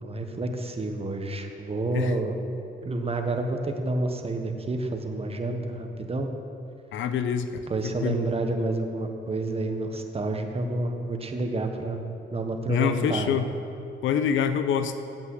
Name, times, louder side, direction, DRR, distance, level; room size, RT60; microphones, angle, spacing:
voice 1, 0.0-2.4 2.8-6.3 7.7-12.0 12.3-13.3, right 2 dB, 30° right, 5 dB, 1.3 m, -29 dB
voice 2, 6.9-8.2 12.7-13.5 14.0-15.0, left 7 dB, 75° left, 10 dB, 0.7 m, -26 dB
8.9 x 8.2 x 7.9 m, 2.7 s
cardioid pair, 90°, 20 cm